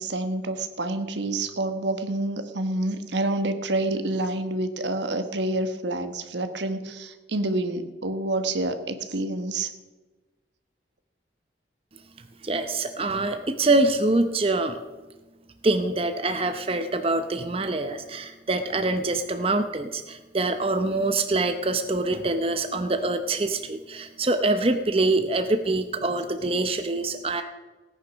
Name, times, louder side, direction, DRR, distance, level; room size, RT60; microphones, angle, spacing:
voice 1, 0.0-9.7, right 2 dB, 80° right, 9 dB, 1.3 m, -28 dB
voice 2, 12.4-14.8 15.6-27.4, right 2 dB, 30° right, 8 dB, 0.7 m, -25 dB
17.5 x 9.6 x 6.2 m, 1.2 s
head